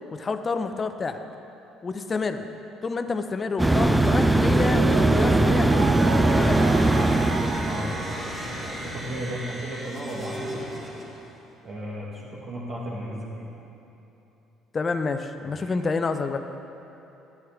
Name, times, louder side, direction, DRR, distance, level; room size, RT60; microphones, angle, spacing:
voice 1, 0.1-1.2 1.8-2.5 2.8-5.8 6.3-6.8 14.7-16.4, left 4 dB, 35° left, 8 dB, 0.7 m, -28 dB
sound 1, 3.6-8.0, right 2 dB, 10° right, 0.5 m, -20 dB
Mallet percussion, 4.4-9.4, right 6 dB, 70° right, 0.8 m, -33 dB
sound 2, 5.7-11.4, equal, 25° right, 2.7 m, -36 dB
voice 2, 7.7-8.2 8.5-10.5 11.6-13.5 15.5-15.7, right 1 dB, 50° right, -7 dB, 1.9 m, -35 dB
12.5 x 10.5 x 3.7 m, 3.0 s
hypercardioid pair, 60°, 0 cm